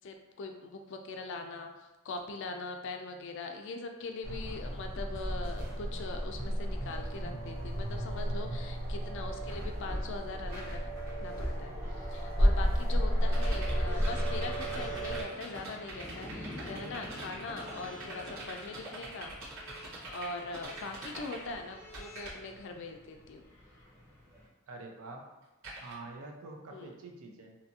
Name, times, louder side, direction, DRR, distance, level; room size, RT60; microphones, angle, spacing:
voice 1, 0.0-1.7 2.0-10.8 11.2-19.3 19.8-23.4 26.7-26.9, left 3 dB, 60° left, 4 dB, 0.4 m, -41 dB
sound 1, 4.2-15.2, equal, 45° right, 1.1 m, -32 dB
sound 2, 13.2-21.4 21.7-22.4 25.6-25.9, right 2 dB, 90° right, 1.2 m, -44 dB
sound 3, 13.9-24.5, left 1 dB, 10° left, 0.7 m, -48 dB
voice 2, 24.7-25.2 25.8-27.6, right 3 dB, 70° right, 2 dB, 0.5 m, -46 dB
2.6 x 2.4 x 2.7 m, 1.1 s
head